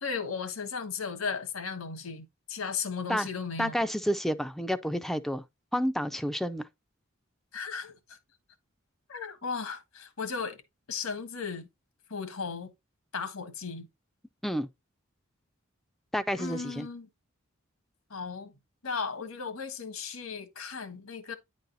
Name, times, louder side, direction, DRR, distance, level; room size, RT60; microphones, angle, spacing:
voice 1, 0.0-3.8 7.5-8.2 9.1-10.6 10.9-11.7 12.1-12.7 13.1-13.9 16.4-17.1 18.1-18.5 18.8-21.3, left 5 dB, 90° left, 1.6 m, -36 dB
voice 2, 3.6-5.4 5.7-6.6 14.4-14.7 16.1-16.9, equal, ahead, 0.4 m, -30 dB
9.9 x 4.1 x 3.9 m
head